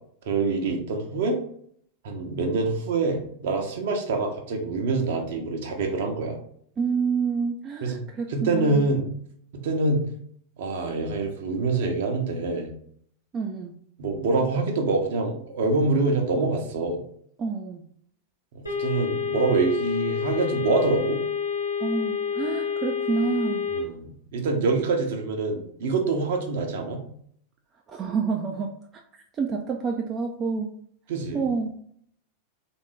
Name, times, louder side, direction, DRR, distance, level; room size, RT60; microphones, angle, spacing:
voice 1, 0.3-1.4 2.0-6.4 7.8-8.0 8.3-9.1 9.6-10.1 10.6-12.7 14.0-17.0 18.5-21.2 23.8-24.1 24.3-27.0 31.1-31.4, right 3 dB, 55° right, 3 dB, 0.8 m, -25 dB
voice 2, 6.8-8.9 13.3-13.7 17.4-17.8 21.8-23.7 27.9-28.7 29.3-30.7 31.3-31.7, right 5 dB, 25° right, 2 dB, 0.4 m, -28 dB
sound 1, 18.7-23.8, left 6 dB, 80° left, 1.0 m, -28 dB
3.5 x 2.6 x 3.3 m, 0.64 s
figure-of-eight pair, 90°, 0 cm